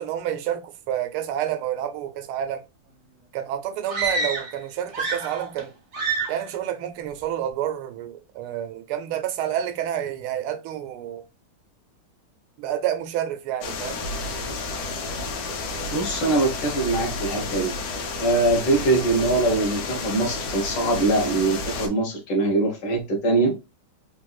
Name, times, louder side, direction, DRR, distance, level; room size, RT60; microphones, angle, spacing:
voice 1, 0.0-2.6 3.3-5.7 6.3-11.2 12.6-14.0, right 10 dB, 90° right, 1.5 m, -29 dB
sound 1, 3.9-4.6 4.9-5.6 5.9-6.5, right 3 dB, 50° right, 0.8 m, -27 dB
sound 2, 13.6-21.9, left 3 dB, 90° left, 1.7 m, -31 dB
voice 2, 15.9-17.7 18.2-23.5, right 2 dB, 60° left, 1.6 m, -22 dB
4.0 x 2.6 x 2.3 m
omnidirectional pair, 2.3 m